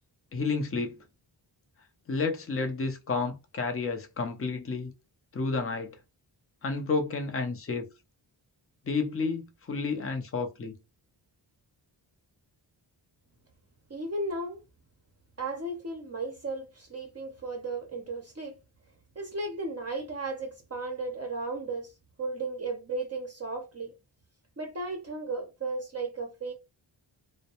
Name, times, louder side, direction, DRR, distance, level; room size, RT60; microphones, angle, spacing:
voice 1, 0.3-1.0 2.1-4.9 5.3-6.0 6.6-7.9 8.8-10.8, left 4 dB, 30° left, 0.6 m, -31 dB
voice 2, 13.9-14.6 15.4-18.5 19.2-21.9 22.2-23.9 24.6-26.5, right 3 dB, 30° right, 0.6 m, -35 dB
2.2 x 2.1 x 2.8 m
cardioid pair, 55°, 47 cm